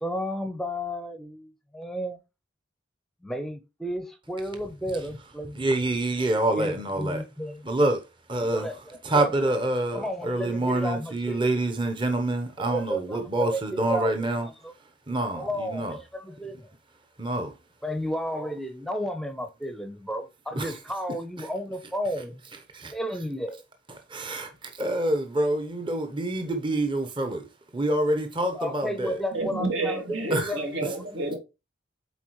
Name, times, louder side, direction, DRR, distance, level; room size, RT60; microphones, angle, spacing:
voice 1, 0.0-2.2 3.2-5.6 6.5-7.7 8.5-9.4 9.9-11.5 12.6-14.3 14.6-14.7 15.3-16.7 17.8-22.4 22.9-23.6 28.5-30.6 31.0-31.1, equal, ahead, 0.7 m, -33 dB
voice 2, 5.5-7.2 7.6-8.7 9.0-14.5 15.1-16.0 17.2-17.5 20.5-20.7 21.4-21.5 22.7-22.9 24.1-27.5 27.7-29.2 30.3-30.5, right 1 dB, 25° right, 0.8 m, -27 dB
voice 3, 29.3-31.4, right 2 dB, 80° right, 2.3 m, -29 dB
8.2 x 4.1 x 3.1 m
head